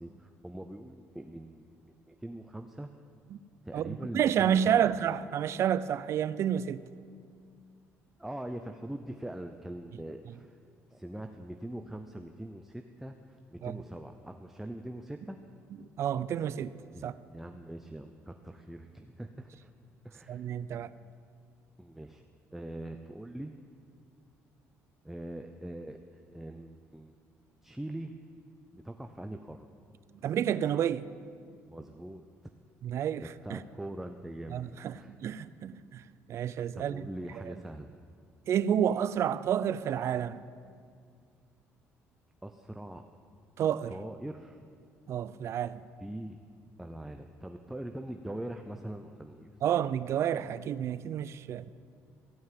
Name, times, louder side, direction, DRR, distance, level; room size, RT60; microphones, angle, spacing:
voice 1, 0.0-2.9 3.6-4.9 8.2-10.5 10.9-15.4 16.9-19.7 20.0-20.4 21.8-22.2 22.5-23.5 25.0-27.1 27.6-28.1 28.7-29.7 31.7-32.3 33.2-34.7 34.9-35.2 36.7-37.9 42.4-43.0 43.9-44.6 46.0-46.4 46.8-49.6, right 1 dB, 5° right, 0.6 m, -42 dB
voice 2, 3.7-6.8 13.6-13.8 16.0-16.7 17.0-17.1 20.3-20.9 30.2-31.1 32.8-33.6 34.5-36.0 36.3-37.1 37.4-37.5 38.5-40.4 43.6-43.9 45.1-45.8 49.6-51.7, right 9 dB, 55° right, 0.4 m, -30 dB
16.0 x 5.5 x 9.2 m
cardioid pair, 100°, 6 cm